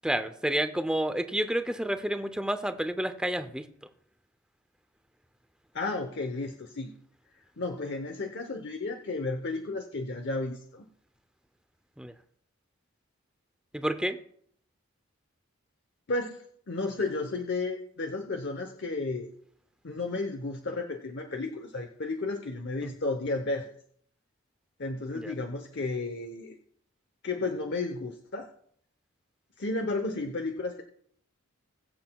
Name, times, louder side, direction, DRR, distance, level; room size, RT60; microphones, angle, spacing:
voice 1, 0.0-3.6 12.0-12.1 13.7-14.2 22.8-22.9 25.1-25.3, right 1 dB, 5° right, 10 dB, 0.6 m, -30 dB
voice 2, 5.7-6.9 7.6-10.9 16.1-19.3 19.8-23.7 24.8-26.6 27.2-28.5 29.6-30.8, left 3 dB, 55° left, 4 dB, 0.9 m, -33 dB
21.5 x 7.8 x 2.3 m, 0.65 s
head